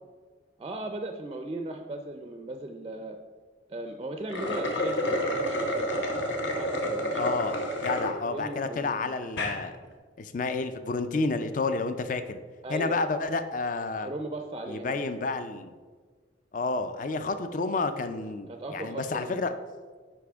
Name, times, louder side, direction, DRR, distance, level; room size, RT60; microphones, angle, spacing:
voice 1, 0.6-3.2 3.7-6.2 6.5-7.4 8.3-9.1 12.6-13.0 14.0-15.0 18.5-19.4, right 2 dB, 25° right, 5 dB, 0.4 m, -37 dB
sound 1, 4.2-8.1 8.6-8.7 9.2-9.6, equal, 70° left, 1.0 m, -29 dB
voice 2, 7.2-9.8 10.2-12.4 12.7-14.1 14.7-15.7 16.5-19.5, left 3 dB, 45° left, 10 dB, 0.4 m, -30 dB
9.8 x 5.0 x 3.5 m, 1.5 s
head